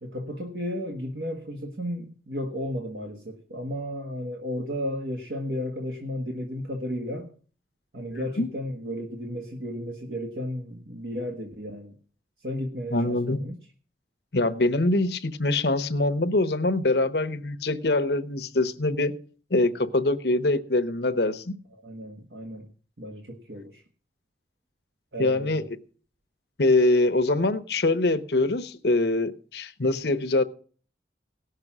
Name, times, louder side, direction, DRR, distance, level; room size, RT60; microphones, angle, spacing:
voice 1, 0.0-7.3 7.9-11.9 12.4-13.6 21.8-22.7 23.0-23.8 25.1-25.7, equal, 65° right, 1 dB, 1.5 m, -33 dB
voice 2, 8.1-8.5 12.9-13.4 14.3-19.1 19.5-21.5 25.2-25.6 26.6-30.4, left 2 dB, 70° left, 10 dB, 0.9 m, -24 dB
17.5 x 6.7 x 6.1 m, 0.43 s
head